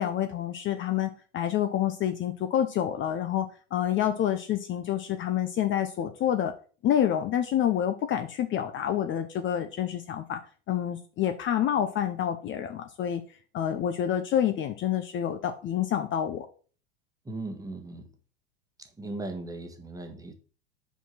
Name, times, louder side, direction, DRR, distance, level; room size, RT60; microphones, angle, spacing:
voice 1, 0.0-6.5 6.8-10.4 10.7-13.2 13.5-16.5, left 10 dB, 35° left, 0.8 m, -28 dB
voice 2, 17.2-18.1 19.0-20.3, right 2 dB, 10° right, 1.4 m, -37 dB
5.5 x 4.7 x 5.8 m
hypercardioid pair, 100°, 35 cm